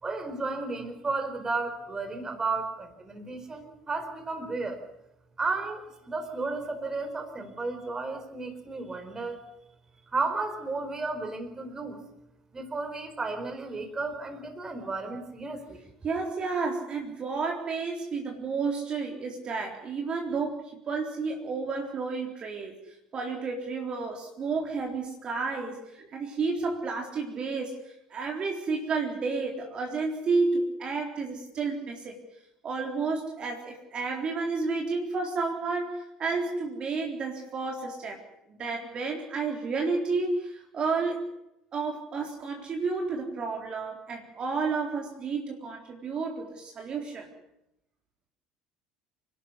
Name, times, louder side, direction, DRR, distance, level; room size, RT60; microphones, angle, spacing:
voice 1, 0.0-4.8 5.4-9.4 10.1-12.0 12.5-15.8, right 3 dB, 25° right, 7 dB, 4.5 m, -33 dB
voice 2, 16.0-32.2 32.6-41.2 41.7-47.3, right 4 dB, 40° right, 1 dB, 3.9 m, -31 dB
28.0 x 12.0 x 9.9 m, 0.84 s
figure-of-eight pair, 65°, 3 cm